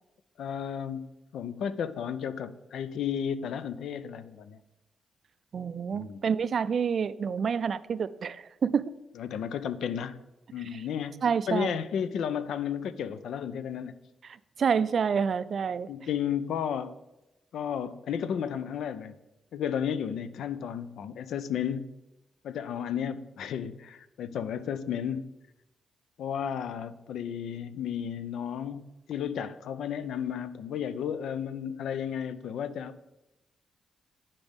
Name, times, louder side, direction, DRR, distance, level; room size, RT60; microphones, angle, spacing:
voice 1, 0.4-1.1 1.3-4.6 5.9-6.2 9.2-10.2 10.5-14.0 15.9-16.9 17.5-19.2 19.5-21.9 22.4-25.3 26.2-33.2, left 8 dB, 80° left, 14 dB, 0.4 m, -33 dB
voice 2, 5.5-8.9 10.7-10.8 11.2-11.8 14.6-15.9, right 6 dB, 55° right, 15 dB, 0.3 m, -28 dB
9.8 x 5.2 x 3.5 m, 0.98 s
cardioid pair, 80°, 0 cm